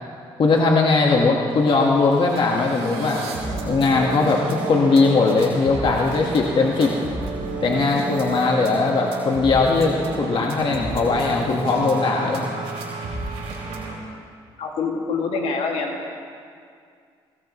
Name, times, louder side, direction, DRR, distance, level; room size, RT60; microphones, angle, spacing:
voice 1, 0.4-3.3 3.6-6.9 7.6-12.5, left 3 dB, 50° left, -1 dB, 1.6 m, -19 dB
sound 1, 1.7-1.8 2.0-13.9, right 3 dB, 80° right, 4.1 m, -31 dB
voice 2, 14.6-16.1, left 4 dB, 75° left, 0 dB, 2.3 m, -26 dB
20.0 x 18.0 x 3.2 m, 2.2 s
supercardioid pair, 70°, 11 cm